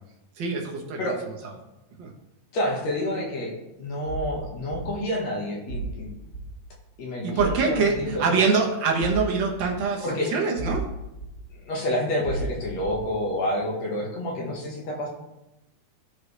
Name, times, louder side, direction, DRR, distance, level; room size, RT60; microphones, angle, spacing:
voice 1, 0.4-1.0 2.0-2.1 7.2-10.9, right 4 dB, 65° right, 0 dB, 1.1 m, -24 dB
voice 2, 2.5-3.5 3.8-6.1 7.0-8.4 10.0-10.3 11.5-15.1, left 1 dB, 60° left, -2 dB, 2.4 m, -29 dB
sound 1, 4.1-4.3 4.7-4.8 5.7-5.9 6.3-6.5 7.4-7.6 7.9-8.0 9.0-9.2 9.6-9.7 10.6-10.8 11.2-11.3 12.2-12.5 12.8-13.0, right 3 dB, 25° left, 2.1 m, -32 dB
14.0 x 4.9 x 3.2 m, 0.94 s
omnidirectional pair, 3.6 m